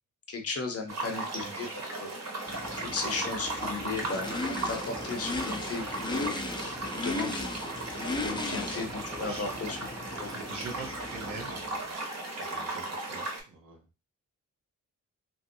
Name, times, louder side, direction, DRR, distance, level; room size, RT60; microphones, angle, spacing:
voice 1, 0.3-2.1 2.8-7.5 8.2-9.9 10.2-10.4, left 4 dB, 45° left, 4 dB, 0.7 m, -36 dB
sound 1, 0.9-13.4, right 2 dB, 55° right, 0.9 m, -37 dB
voice 2, 1.4-1.8 6.3-6.4 8.6-8.8 9.1-9.4 10.3-11.6 12.4-13.9, right 4 dB, 85° right, 1 dB, 1.0 m, -44 dB
Race car auto racing / Idling / Accelerating revving vroom, 2.5-11.9, left 2 dB, 15° left, 0.4 m, -37 dB
3.0 x 2.6 x 2.7 m, 0.29 s
wide cardioid pair, 120°, 32 cm